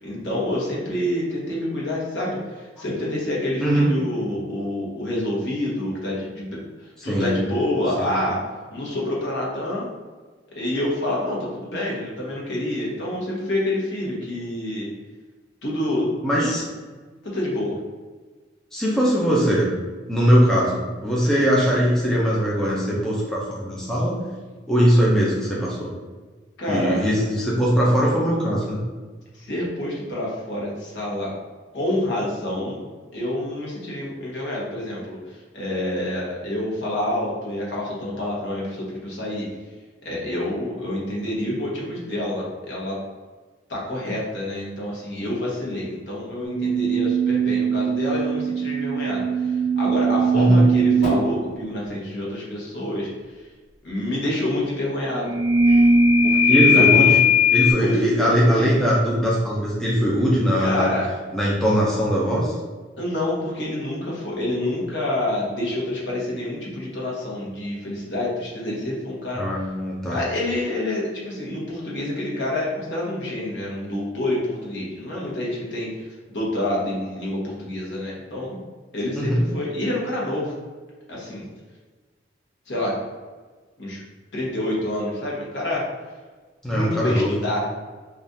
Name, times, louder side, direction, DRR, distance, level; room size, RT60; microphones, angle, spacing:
voice 1, 0.0-8.4 8.7-9.9 10.5-14.9 15.6-16.1 16.4-16.5 17.2-17.8 26.6-27.1 29.3-31.3 31.7-32.8 33.1-39.5 40.0-43.0 43.7-53.1 53.8-55.3 56.2-57.1 57.8-58.7 60.6-61.1 63.0-69.4 70.0-78.6 78.9-80.5 81.1-81.4 82.7-82.9 83.8-84.0 84.3-85.8 86.7-87.6, left 1 dB, 65° left, -4 dB, 0.9 m, -27 dB
voice 2, 7.0-7.4 8.0-8.1 16.2-16.6 18.7-19.7 20.1-24.2 24.7-25.9 26.7-28.8 50.3-50.6 56.5-57.2 57.5-60.9 61.3-62.6 69.4-70.2 79.1-79.4 86.6-87.3, equal, 5° left, -6 dB, 0.4 m, -20 dB
sound 1, 46.4-51.3 55.1-57.7, equal, 30° left, 1.4 m, -19 dB
3.5 x 2.4 x 2.6 m, 1.4 s
head